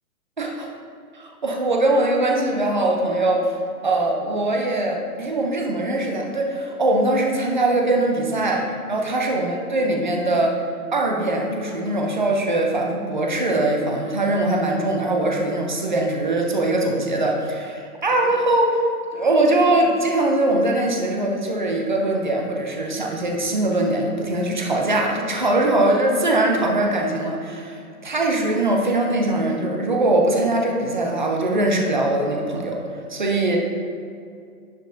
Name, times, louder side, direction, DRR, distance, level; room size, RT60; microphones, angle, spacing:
voice 1, 0.4-0.7 1.4-3.4 3.8-10.6 10.9-18.8 19.1-32.8 33.1-33.6, right 2 dB, 30° right, 0 dB, 0.5 m, -21 dB
10.0 x 5.2 x 2.6 m, 2.4 s
hypercardioid pair, 170°, 47 cm